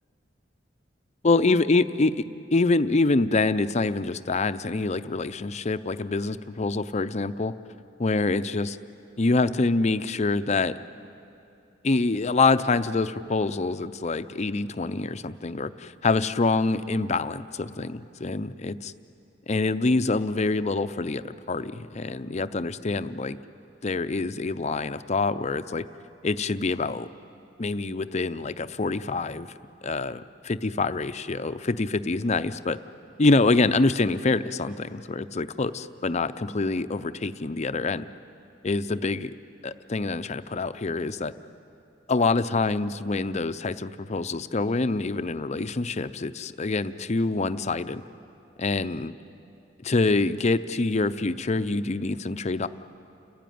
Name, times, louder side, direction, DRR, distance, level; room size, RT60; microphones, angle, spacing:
voice 1, 1.2-2.2 2.5-7.5 8.0-8.8 9.2-10.7 11.8-18.9 19.5-23.4 23.8-25.8 26.2-27.1 27.6-29.5 29.8-32.8 33.2-38.0 38.6-39.3 39.6-41.3 42.1-48.0 48.6-49.1 49.8-52.7, left 3 dB, 40° left, 11 dB, 0.6 m, -25 dB
29.5 x 15.5 x 9.4 m, 2.7 s
head